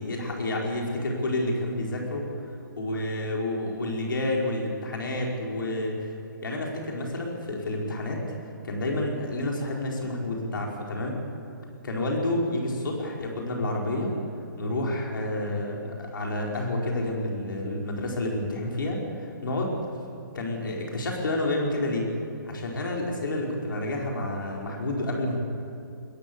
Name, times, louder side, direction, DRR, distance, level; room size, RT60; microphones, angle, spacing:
voice 1, 0.0-2.3 2.8-6.1 6.4-8.2 8.6-11.1 11.8-14.1 14.6-19.8 20.3-22.1 22.4-25.4, left 1 dB, 75° left, -1 dB, 5.1 m, -29 dB
21.5 x 20.0 x 7.2 m, 2.8 s
hypercardioid pair, 150°, 11 cm